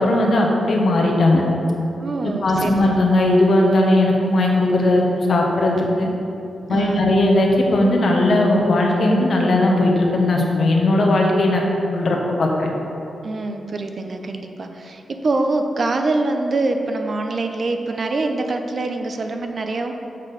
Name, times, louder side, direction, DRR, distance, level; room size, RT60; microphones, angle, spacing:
voice 1, 0.0-1.4 2.2-6.1 6.7-11.6 11.9-12.7, left 1 dB, 60° left, 0 dB, 1.2 m, -17 dB
voice 2, 2.0-2.8 6.7-7.0 13.2-19.9, right 2 dB, 45° right, 5 dB, 0.6 m, -24 dB
7.3 x 4.0 x 6.6 m, 2.9 s
wide cardioid pair, 110°, 0 cm